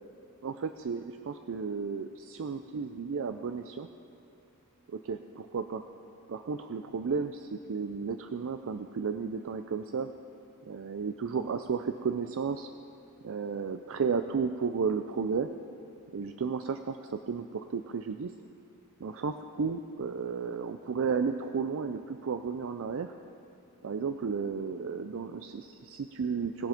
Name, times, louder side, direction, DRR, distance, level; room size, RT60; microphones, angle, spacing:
voice 1, 0.4-3.9 4.9-5.8 6.3-10.1 10.7-12.7 13.2-15.5 16.1-18.3 19.0-23.1 23.8-26.7, right 5 dB, 60° right, 8 dB, 0.4 m, -33 dB
20.5 x 7.5 x 5.1 m, 2.6 s
head